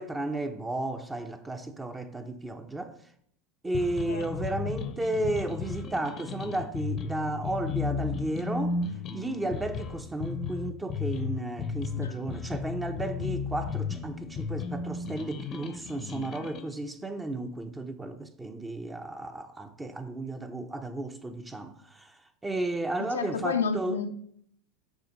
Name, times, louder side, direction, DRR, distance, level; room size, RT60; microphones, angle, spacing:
voice 1, 0.0-3.0 3.6-8.8 9.1-24.0, right 2 dB, 15° right, 0.6 m, -33 dB
sound 1, 3.7-16.7, left 5 dB, 40° left, 0.7 m, -34 dB
voice 2, 23.1-24.1, left 5 dB, 90° left, 0.5 m, -30 dB
7.2 x 3.6 x 5.1 m
hypercardioid pair, 95°, 0 cm